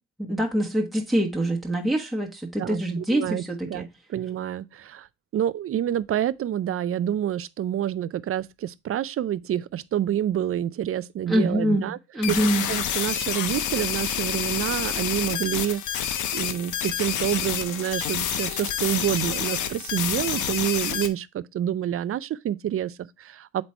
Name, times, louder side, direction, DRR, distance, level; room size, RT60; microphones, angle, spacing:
voice 1, 0.2-3.9 11.3-12.6, right 1 dB, ahead, 1.3 m, -25 dB
voice 2, 2.6-5.1 5.3-12.0 12.3-12.4 12.7-23.6, right 11 dB, 50° right, 0.5 m, -28 dB
sound 1, 12.2-21.1, left 9 dB, 75° left, 1.0 m, -28 dB
8.1 x 3.3 x 4.3 m
cardioid pair, 90°, 30 cm